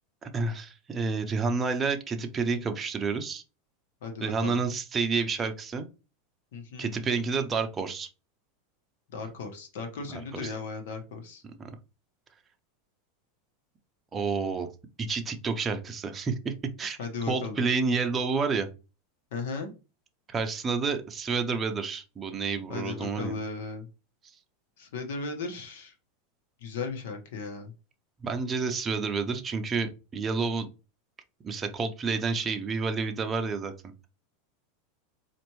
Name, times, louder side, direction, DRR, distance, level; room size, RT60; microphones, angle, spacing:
voice 1, 0.2-3.4 4.2-5.8 6.8-8.1 11.6-11.7 14.1-14.7 15.0-17.0 17.3-18.7 20.3-23.3 28.2-30.7 31.4-33.7, right 4 dB, 20° right, 0.6 m, -29 dB
voice 2, 4.0-4.6 6.5-6.9 9.1-11.4 17.0-17.6 19.3-19.7 22.7-23.9 24.8-25.9 26.6-27.7, left 4 dB, 75° left, 1.2 m, -36 dB
4.3 x 2.5 x 3.0 m
supercardioid pair, 145°, 0 cm